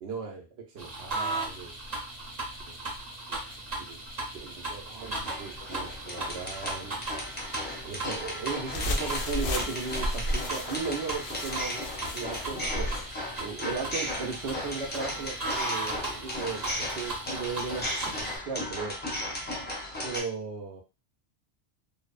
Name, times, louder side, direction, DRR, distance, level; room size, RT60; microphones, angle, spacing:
voice 1, 0.0-1.7 3.3-3.4 3.9-4.0 4.4-7.0 7.8-11.9 12.1-12.9 13.4-19.3 20.0-20.8, right 5 dB, 70° right, 2 dB, 1.0 m, -37 dB
sound 1, 0.8-18.4, right 2 dB, 40° right, 0.9 m, -37 dB
sound 2, 5.0-20.2, left 1 dB, 15° left, 0.4 m, -36 dB
sound 3, 8.6-13.1, left 1 dB, 60° left, 0.6 m, -33 dB
2.8 x 2.0 x 2.4 m, 0.30 s
omnidirectional pair, 1.2 m